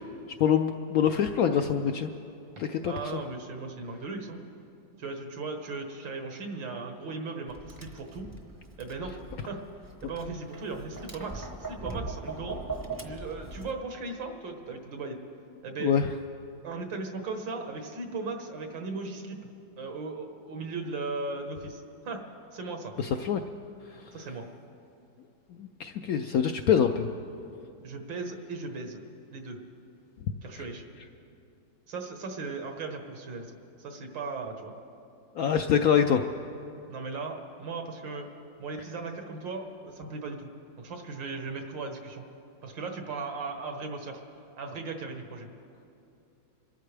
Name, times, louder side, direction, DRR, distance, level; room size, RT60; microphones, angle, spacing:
voice 1, 0.4-2.1 2.6-2.9 15.8-16.1 23.0-23.4 25.6-27.1 35.4-36.2, left 8 dB, 75° left, 6 dB, 0.8 m, -25 dB
voice 2, 2.8-4.4 5.0-8.3 8.8-9.2 9.4-9.6 10.0-12.6 13.0-15.2 15.6-16.0 16.6-19.4 19.8-22.2 22.5-22.9 24.1-24.5 27.8-29.0 29.3-29.6 30.4-30.8 31.9-33.5 33.8-34.7 36.9-38.3 38.6-40.5 40.8-42.2 42.6-44.2 44.6-45.5, right 3 dB, 80° right, 4 dB, 2.1 m, -37 dB
Tap, 7.5-13.7, right 3 dB, 20° right, 0.6 m, -40 dB
26.5 x 13.0 x 3.4 m, 2.7 s
omnidirectional pair, 2.0 m